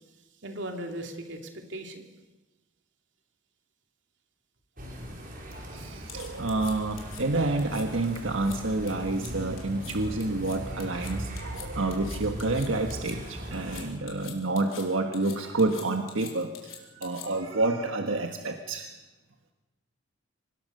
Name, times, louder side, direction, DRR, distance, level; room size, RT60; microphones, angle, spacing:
voice 1, 0.4-2.0, right 1 dB, 65° right, 4 dB, 2.9 m, -37 dB
sound 1, 4.8-13.9, right 1 dB, 45° right, 5.1 m, -39 dB
voice 2, 5.7-19.0, right 2 dB, 85° right, 5 dB, 1.5 m, -29 dB
sound 2, 6.1-7.2 7.6-7.8 8.1-8.6 8.9-9.3 9.6-9.9 10.2-13.1 13.5-14.8 15.1-17.5, left 10 dB, 90° left, 4.5 m, -45 dB
25.0 x 20.5 x 6.7 m, 1.1 s
head